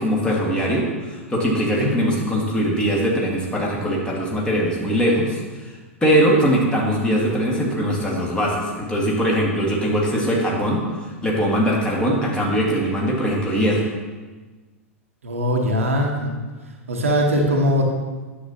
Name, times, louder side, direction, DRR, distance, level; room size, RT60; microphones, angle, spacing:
voice 1, 0.0-5.4 5.6-5.7 6.0-10.8 11.2-13.8, equal, 10° left, -3 dB, 1.7 m, -21 dB
voice 2, 15.2-16.3 16.9-17.9, equal, 70° right, 1 dB, 1.2 m, -20 dB
9.8 x 7.3 x 2.8 m, 1.3 s
figure-of-eight pair, 95°, 8 cm